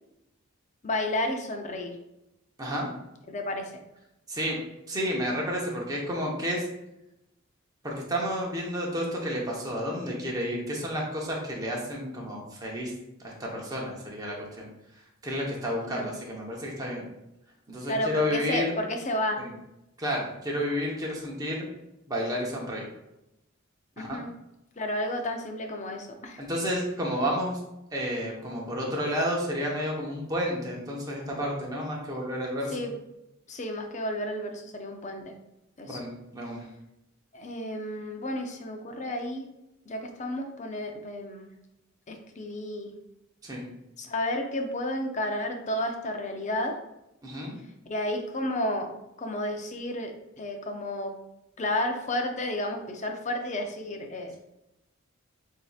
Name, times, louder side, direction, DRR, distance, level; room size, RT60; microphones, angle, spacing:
voice 1, 0.8-2.0 3.3-3.8 15.9-16.1 17.8-19.4 24.0-24.3 24.8-26.4 32.7-32.9 33.5-35.3 35.8-36.0 37.3-39.5 39.9-41.5 42.1-42.9 44.0-46.8 47.9-48.9 49.2-51.1 51.6-54.4, left 1 dB, 35° left, 4 dB, 0.6 m, -32 dB
voice 2, 4.9-6.6 7.8-12.9 13.2-14.7 15.2-17.1 17.7-18.7 19.4-19.5 20.0-21.7 22.1-22.9 24.0-24.2 26.4-27.6 27.9-32.8 35.9-36.7 43.4-43.6 47.2-47.6, equal, 20° right, -2 dB, 0.9 m, -31 dB
7.5 x 2.7 x 2.4 m, 0.89 s
head